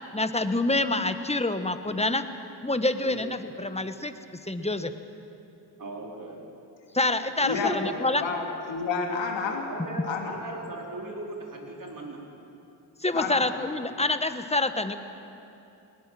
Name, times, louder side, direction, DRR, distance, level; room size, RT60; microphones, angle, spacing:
voice 1, 0.1-2.2 2.6-4.1 4.4-4.9 6.9-8.2 13.0-15.0, left 2 dB, 15° left, 10 dB, 1.4 m, -27 dB
voice 2, 3.0-3.3 5.8-6.5 9.4-12.3, right 2 dB, 45° right, 0 dB, 4.5 m, -38 dB
voice 3, 7.4-7.8 8.2-9.6 10.1-10.3 13.1-13.4, left 5 dB, 75° left, 2 dB, 3.1 m, -29 dB
19.5 x 19.5 x 7.7 m, 2.8 s
supercardioid pair, 55°, 44 cm